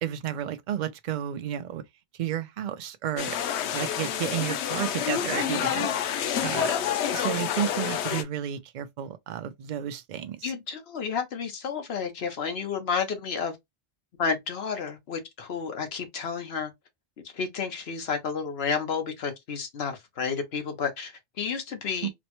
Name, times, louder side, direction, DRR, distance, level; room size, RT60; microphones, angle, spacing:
voice 1, 0.0-1.8 2.2-3.4 3.7-5.9 6.4-6.7 7.1-10.5 22.0-22.1, right 10 dB, 55° right, 0.5 m, -32 dB
sound 1, 3.2-8.2, left 9 dB, 90° left, 0.9 m, -28 dB
voice 2, 10.4-13.6 14.2-16.7 17.3-22.1, left 6 dB, 70° left, 1.1 m, -31 dB
4.1 x 2.1 x 2.9 m
omnidirectional pair, 1.1 m